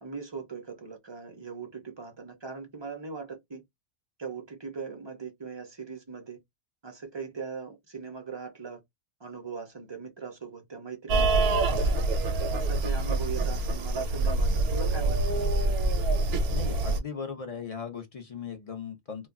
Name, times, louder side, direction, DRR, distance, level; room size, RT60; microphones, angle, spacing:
voice 1, 0.0-3.6 4.2-6.4 6.8-8.8 9.2-11.6 12.5-15.9 16.9-17.0, right 5 dB, 45° right, 0.3 m, -40 dB
sound 1, 11.1-17.0, right 2 dB, 65° right, 0.7 m, -26 dB
voice 2, 16.5-19.3, left 6 dB, 45° left, 0.5 m, -38 dB
2.3 x 2.1 x 3.5 m
omnidirectional pair, 1.3 m